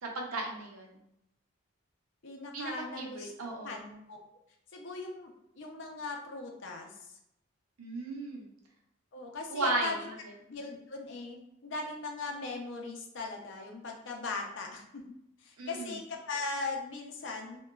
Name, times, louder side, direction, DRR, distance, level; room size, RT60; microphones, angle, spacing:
voice 1, 0.0-1.0 2.5-3.8 7.8-8.5 9.5-9.9 15.6-15.9, right 2 dB, 90° right, 0 dB, 0.6 m, -35 dB
voice 2, 2.2-4.2 4.7-5.3 5.6-7.2 9.1-10.1 10.5-11.4 11.6-15.0 15.4-17.7, left 3 dB, 60° left, 1 dB, 0.5 m, -39 dB
2.9 x 2.2 x 2.2 m, 0.82 s
head